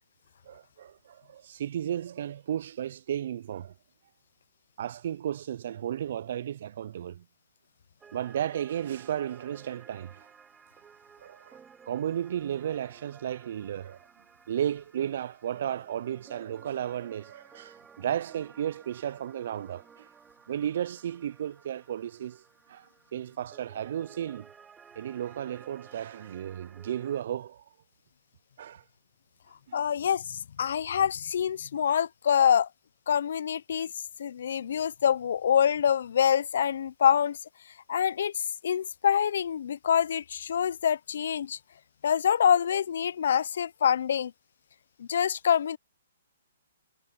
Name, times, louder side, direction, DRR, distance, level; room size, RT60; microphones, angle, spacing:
voice 1, 0.5-3.7 4.8-7.2 8.1-10.3 11.2-11.6 11.9-14.0 14.5-20.1 20.5-22.4 22.7-22.9 23.1-24.5 25.0-27.6 28.6-28.8 29.7-29.8, right 10 dB, 60° right, 0.5 m, -34 dB
sound 1, 8.0-27.2, right 7 dB, 15° right, 4.6 m, -55 dB
voice 2, 29.7-32.7 33.1-33.9 34.2-37.4 37.9-41.6 42.0-44.3 45.0-45.8, left 8 dB, 65° left, 0.5 m, -26 dB
hypercardioid pair, 140°, 0 cm